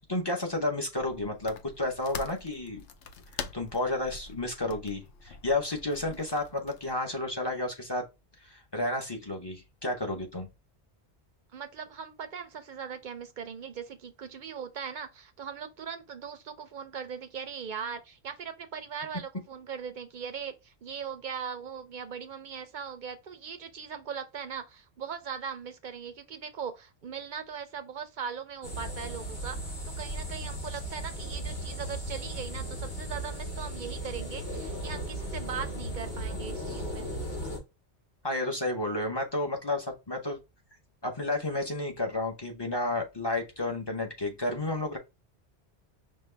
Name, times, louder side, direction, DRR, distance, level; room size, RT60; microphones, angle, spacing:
voice 1, 0.0-2.8 3.5-8.0 8.5-10.5 38.2-40.4 41.0-45.0, left 2 dB, 25° left, 0.7 m, -31 dB
sound 1, 1.0-7.0, left 5 dB, 90° left, 0.9 m, -44 dB
voice 2, 11.5-37.1, right 7 dB, 55° right, 0.5 m, -39 dB
sound 2, 28.6-37.6, right 1 dB, 55° left, 2.2 m, -36 dB
5.3 x 2.2 x 3.2 m
omnidirectional pair, 1.2 m